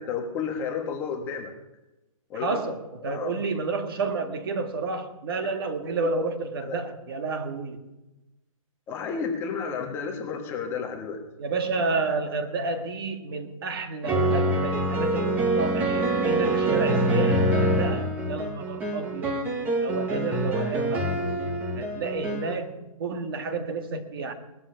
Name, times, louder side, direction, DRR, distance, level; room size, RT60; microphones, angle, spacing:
voice 1, 0.0-1.5 2.3-2.6 3.0-3.3 5.4-5.5 6.0-6.1 6.7-6.8 8.9-11.2, left 6 dB, 15° left, 2 dB, 1.3 m, -32 dB
voice 2, 2.4-7.8 11.4-19.4 19.8-21.1 21.8-24.3, right 3 dB, 40° right, 7 dB, 1.7 m, -30 dB
sound 1, 14.0-22.6, right 1 dB, 10° right, 1.1 m, -25 dB
19.5 x 13.0 x 5.7 m, 1.0 s
hypercardioid pair, 170°, 18 cm